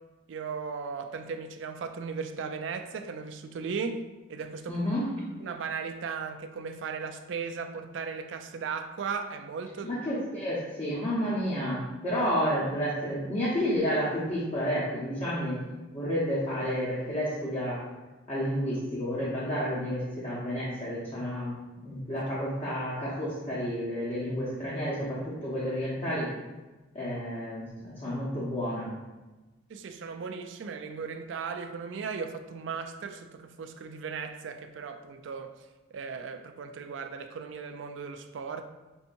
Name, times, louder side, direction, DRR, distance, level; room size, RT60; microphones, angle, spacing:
voice 1, 0.3-4.0 4.3-4.9 5.4-10.0 29.7-38.6, right 5 dB, 65° right, 0.3 m, -37 dB
voice 2, 4.7-5.1 9.8-15.6 15.9-17.8 18.3-21.5 21.8-26.3 26.9-28.9, equal, 35° left, 0.9 m, -30 dB
5.3 x 2.8 x 2.6 m
head